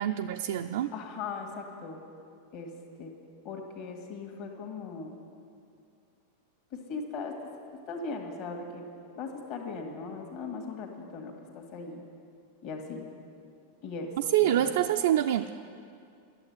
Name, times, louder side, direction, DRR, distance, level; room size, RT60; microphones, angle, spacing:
voice 1, 0.0-0.9 14.3-15.5, right 12 dB, 55° right, 4 dB, 0.4 m, -26 dB
voice 2, 0.9-2.0 2.5-2.7 3.0-3.1 3.4-5.1 6.7-7.3 7.9-8.8 9.2-12.0 12.6-13.1 13.8-14.1 14.4-14.7, left 4 dB, 45° left, 2 dB, 1.9 m, -38 dB
12.0 x 7.9 x 9.5 m, 2.4 s
figure-of-eight pair, 90°, 0 cm